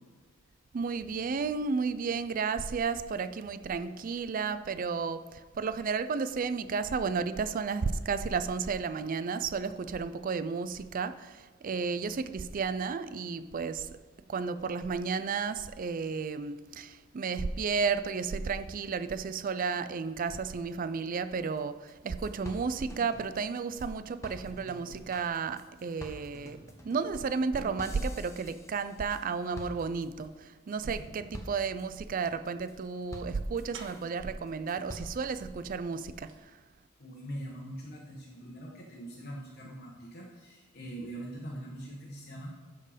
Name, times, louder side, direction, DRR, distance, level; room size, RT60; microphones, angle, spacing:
voice 1, 0.7-14.0 14.3-36.6, right 5 dB, 45° right, 13 dB, 0.4 m, -33 dB
sound 1, 21.6-21.7 21.9-22.0 22.2-23.9 24.2-29.2 29.5-30.3 30.7-31.0 31.3-31.8 32.2-32.7 33.1-34.0 34.5-35.4, left 1 dB, 15° left, 0.9 m, -47 dB
sound 2, 27.9-28.1 28.8-34.2 35.2-35.3 35.7-36.5 36.8-36.9, right 2 dB, 70° right, 1.4 m, -55 dB
voice 2, 37.0-42.6, right 1 dB, 50° left, -4 dB, 1.3 m, -42 dB
12.0 x 4.4 x 5.1 m, 1.3 s
head